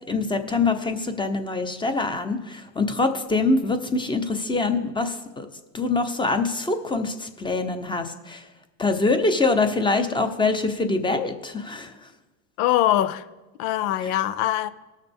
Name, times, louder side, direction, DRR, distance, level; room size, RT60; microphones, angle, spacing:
voice 1, 0.1-5.5 5.7-8.5 8.8-12.1 14.0-14.1, left 3 dB, 10° left, 0.8 m, -24 dB
voice 2, 12.6-13.2 13.6-14.7, left 13 dB, 75° left, 0.7 m, -22 dB
19.0 x 6.5 x 3.5 m
supercardioid pair, 125°, 43 cm